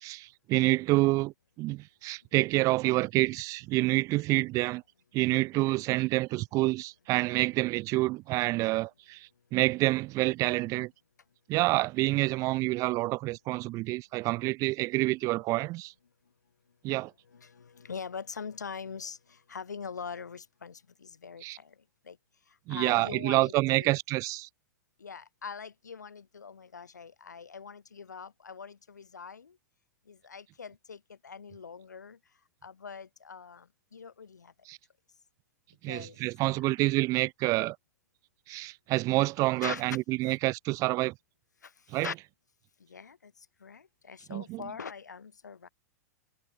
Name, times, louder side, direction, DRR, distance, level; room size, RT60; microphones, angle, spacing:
voice 1, 0.0-4.8 5.1-10.9 11.5-15.9 16.8-17.1 21.4-21.6 22.7-24.5 34.7-34.8 35.8-37.8 38.5-41.1 41.9-42.1 44.3-44.6, right 20 dB, 35° right, 0.3 m, -28 dB
voice 2, 17.3-21.7 22.1-22.2 22.7-23.9 25.0-29.5 30.1-32.2 32.6-33.7 33.9-34.5 35.9-36.2 36.6-36.7 39.6-40.0 40.2-40.4 42.0-42.1 42.9-43.3 43.6-45.7, left 6 dB, 80° left, 1.5 m, -42 dB
figure-of-eight pair, 95°, 9 cm